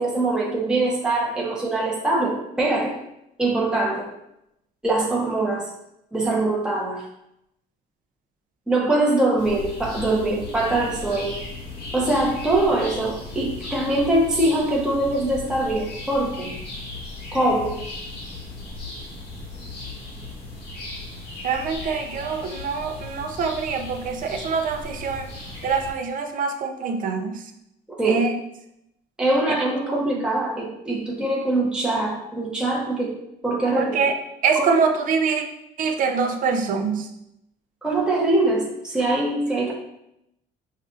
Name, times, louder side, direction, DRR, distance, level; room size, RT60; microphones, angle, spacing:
voice 1, 0.0-3.0 3.4-4.1 4.8-5.7 6.1-7.0 8.7-11.4 11.9-16.5 17.3-17.8 28.0-28.2 29.2-33.1 33.4-34.0 34.5-34.7 37.8-39.7, right 2 dB, 5° right, -4 dB, 0.8 m, -23 dB
sound 1, 9.4-25.9, left 2 dB, 80° left, 1.4 m, -36 dB
voice 2, 21.4-25.3 25.6-27.4 28.0-28.4 29.5-29.6 29.8-30.2 33.8-34.1 34.4-35.4 35.8-37.1, right 5 dB, 55° right, 6 dB, 0.5 m, -24 dB
5.3 x 2.4 x 2.4 m, 0.82 s
cardioid pair, 110°, 17 cm